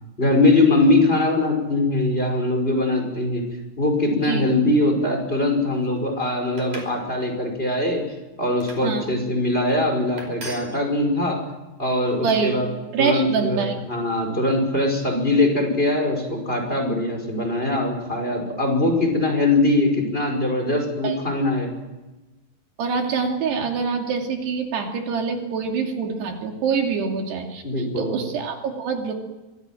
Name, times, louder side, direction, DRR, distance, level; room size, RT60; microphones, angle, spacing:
voice 1, 0.2-3.4 3.8-8.0 8.4-11.4 11.8-12.7 13.0-21.7 27.6-28.1, left 2 dB, 15° left, 3 dB, 5.4 m, -21 dB
sound 1, 6.6-7.0 7.5-7.8 8.6-8.9 9.6-9.8 10.2-10.7, right 2 dB, 45° right, 6.4 m, -38 dB
voice 2, 12.2-12.7 12.9-13.8 21.0-21.2 22.8-29.1, right 5 dB, 75° right, 2 dB, 4.8 m, -25 dB
25.0 x 18.0 x 9.1 m, 1.1 s
omnidirectional pair, 4.8 m